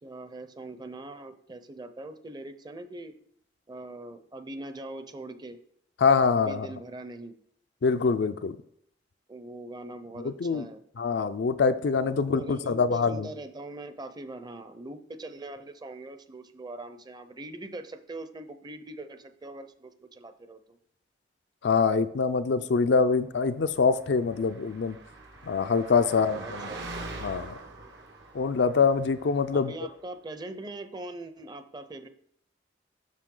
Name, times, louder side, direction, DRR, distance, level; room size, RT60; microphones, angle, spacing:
voice 1, 0.0-3.1 3.7-5.6 6.3-7.3 9.3-10.8 12.1-20.8 26.0-26.8 29.5-32.1, right 2 dB, 25° right, 10 dB, 0.6 m, -42 dB
voice 2, 6.0-6.7 7.8-8.6 10.2-10.7 11.0-13.3 21.6-25.0 25.5-26.7 27.2-27.6 28.3-29.7, left 5 dB, 75° left, 10 dB, 0.4 m, -24 dB
Car passing by, 23.8-29.7, right 2 dB, 75° right, 1.3 m, -43 dB
7.4 x 6.5 x 3.8 m, 0.67 s
head